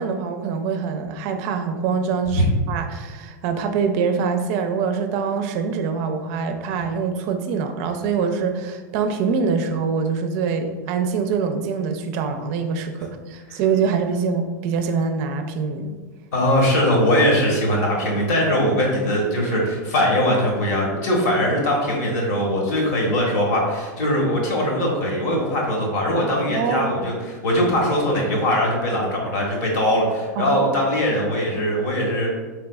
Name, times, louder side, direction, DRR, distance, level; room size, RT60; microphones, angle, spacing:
voice 1, 0.0-15.9 26.5-26.9 30.4-30.6, right 5 dB, 50° right, 6 dB, 0.5 m, -24 dB
voice 2, 16.3-32.3, equal, 70° left, -1 dB, 1.3 m, -21 dB
4.0 x 3.4 x 2.3 m, 1.4 s
supercardioid pair, 130°, 10 cm